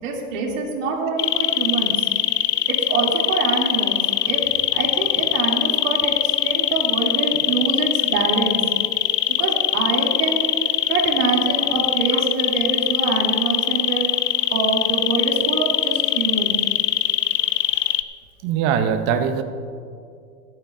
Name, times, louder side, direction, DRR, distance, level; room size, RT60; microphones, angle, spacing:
voice 1, 0.0-2.1 2.7-4.0 4.3-4.4 4.7-8.6 9.4-10.5 10.9-14.1 14.5-16.6, right 4 dB, 55° right, -1 dB, 2.7 m, -24 dB
sound 1, 1.2-18.0, left 13 dB, 80° left, 0.7 m, -21 dB
voice 2, 18.4-19.4, right 8 dB, 25° right, 9 dB, 0.5 m, -22 dB
27.0 x 9.0 x 2.5 m, 2.4 s
hypercardioid pair, 140°, 46 cm